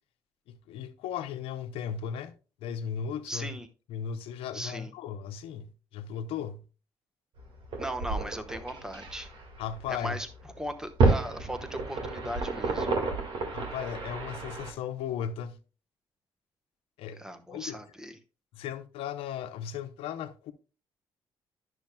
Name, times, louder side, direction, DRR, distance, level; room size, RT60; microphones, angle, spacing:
voice 1, 0.5-2.3 2.6-3.6 3.9-6.6 9.6-10.2 13.5-15.6 17.0-17.2 17.5-17.8 18.5-20.5, left 8 dB, 80° left, 0.8 m, -36 dB
voice 2, 3.3-3.7 4.5-4.9 7.8-9.3 9.9-10.3 10.6-12.9 17.2-18.2, equal, 5° right, 1.1 m, -37 dB
sound 1, 7.4-14.7, right 3 dB, 65° right, 1.8 m, -31 dB
10.5 x 6.3 x 2.2 m
supercardioid pair, 70°, 9 cm